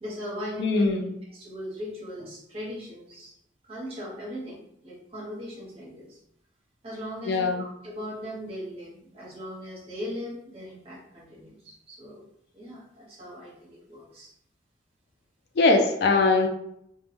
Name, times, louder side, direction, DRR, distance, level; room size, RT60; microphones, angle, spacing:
voice 1, 0.0-1.0 1.3-3.3 3.6-6.2 6.8-12.2 12.5-14.3, equal, 30° right, -5 dB, 0.8 m, -39 dB
voice 2, 0.6-1.1 7.3-7.6 15.6-16.5, left 3 dB, 60° left, 3 dB, 0.3 m, -21 dB
2.2 x 2.1 x 3.0 m, 0.75 s
head